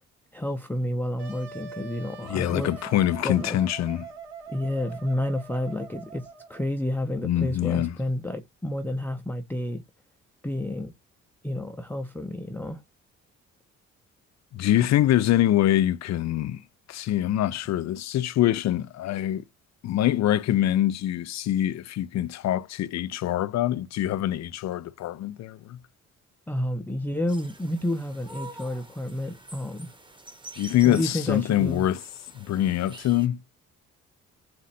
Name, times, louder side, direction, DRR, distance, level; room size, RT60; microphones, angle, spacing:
voice 1, 0.3-2.7 3.2-3.6 4.5-9.8 10.4-10.9 11.4-12.8 26.5-29.9 30.8-31.8, left 1 dB, 5° left, 0.6 m, -30 dB
Wind instrument woodwind instrument, 1.2-6.7, right 5 dB, 60° right, 2.9 m, -43 dB
voice 2, 2.3-4.1 7.2-8.0 14.5-16.6 16.9-19.4 19.8-25.8 30.6-32.0 32.3-33.4, left 13 dB, 60° left, 0.5 m, -24 dB
sound 1, 27.3-33.3, right 2 dB, 15° right, 1.0 m, -47 dB
4.1 x 2.5 x 4.2 m
cardioid pair, 90°, 30 cm